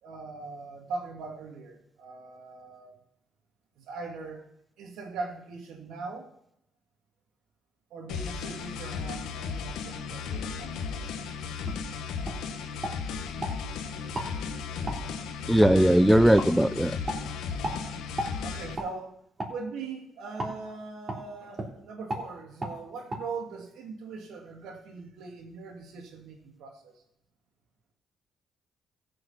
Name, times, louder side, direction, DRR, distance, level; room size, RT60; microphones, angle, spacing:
voice 1, 0.0-3.0 3.8-4.5 4.8-6.3 7.9-11.3 17.5-17.8 18.4-19.2 19.5-26.9, right 4 dB, 85° right, 2 dB, 2.5 m, -41 dB
sound 1, 8.1-18.8, left 5 dB, 90° left, 1.1 m, -35 dB
sound 2, 11.7-11.8 12.2-12.4 12.8-13.5 14.1-14.3 14.9-15.0 15.6-15.7 16.4-16.5 17.0-17.2 17.6-17.8 18.2-18.3 18.7-18.9 19.4-19.6 20.4-20.5 21.1-21.2 21.5-21.7 22.1-22.3 22.6-22.7 23.1-23.2, right 1 dB, 30° right, 3.4 m, -33 dB
voice 2, 15.5-17.0, right 1 dB, 5° right, 14 dB, 0.4 m, -19 dB
15.5 x 6.6 x 5.9 m, 0.75 s
cardioid pair, 90°, 0 cm